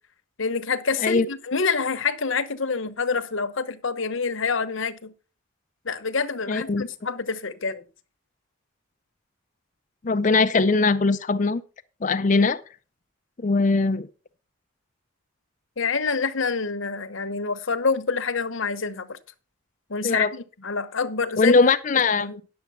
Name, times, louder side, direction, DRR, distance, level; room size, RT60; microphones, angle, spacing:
voice 1, 0.4-5.1 5.8-7.8 15.8-19.2 19.9-21.7 22.2-22.4, left 5 dB, 65° left, 1.0 m, -27 dB
voice 2, 6.5-6.9 10.0-11.6 12.0-12.6 13.4-14.1 20.0-20.3 21.4-22.3, left 3 dB, 35° left, 0.5 m, -20 dB
10.5 x 7.0 x 5.4 m
head